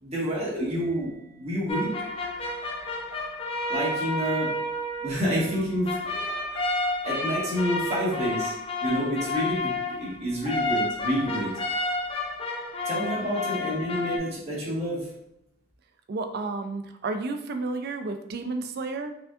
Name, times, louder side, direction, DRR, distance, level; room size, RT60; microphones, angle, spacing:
voice 1, 0.0-1.1 1.4-1.9 3.7-4.5 5.0-6.2 6.5-6.8 7.0-8.5 8.8-9.7 10.0-11.5 12.8-15.1, equal, 30° right, -7 dB, 1.3 m, -28 dB
Mallet percussion, 0.8-8.3, right 6 dB, 5° left, 1.1 m, -61 dB
sound 1, 1.7-14.2, left 2 dB, 25° left, 0.4 m, -30 dB
voice 2, 16.1-19.1, right 3 dB, 45° right, 7 dB, 0.4 m, -32 dB
4.9 x 2.5 x 2.4 m, 0.81 s
head